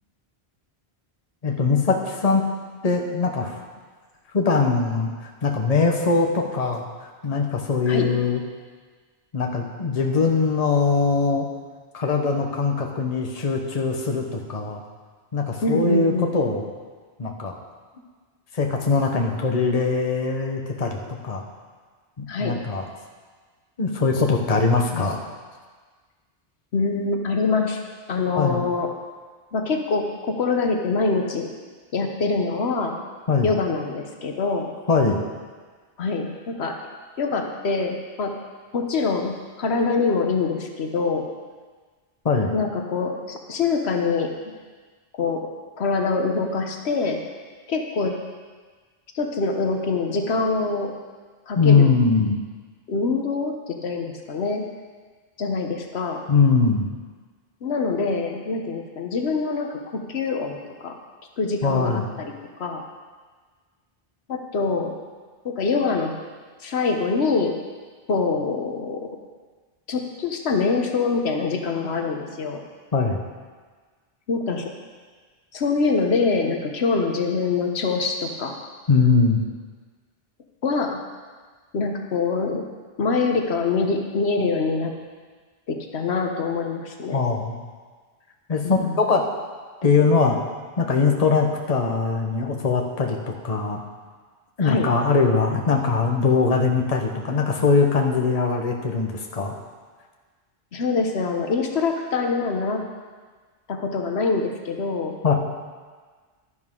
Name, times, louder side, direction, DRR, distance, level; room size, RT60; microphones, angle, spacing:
voice 1, 1.4-2.5 2.8-3.6 4.3-8.4 9.3-11.5 11.9-14.8 15.3-16.6 17.2-17.5 18.5-21.4 22.2-22.9 23.8-25.2 28.3-28.6 33.3-33.5 34.9-35.2 42.2-42.5 51.6-52.4 56.3-56.9 61.6-62.1 72.9-73.2 78.9-79.4 87.1-87.6 88.5-89.2 89.8-90.4 90.8-93.8 94.6-99.5 105.2-105.3, left 4 dB, 40° left, 2 dB, 1.1 m, -21 dB
voice 2, 15.6-16.3 22.3-22.6 24.9-25.1 26.7-27.8 28.1-28.9 29.5-31.5 31.9-33.0 33.4-34.7 36.0-36.7 37.2-38.3 38.7-41.2 42.5-44.3 45.1-45.4 45.8-47.2 47.7-48.1 49.1-50.9 51.5-51.9 52.9-54.6 55.4-56.2 57.6-61.0 61.4-62.3 62.6-62.8 64.3-65.0 65.4-66.1 66.6-67.5 68.1-69.0 69.9-72.6 74.3-74.7 75.5-78.6 80.6-81.0 81.7-82.6 83.0-84.9 85.7-87.3 88.6-89.0 94.6-94.9 100.7-102.8 103.7-105.1, left 4 dB, 80° left, 3 dB, 1.2 m, -24 dB
12.0 x 11.0 x 3.7 m, 1.5 s
omnidirectional pair, 1.1 m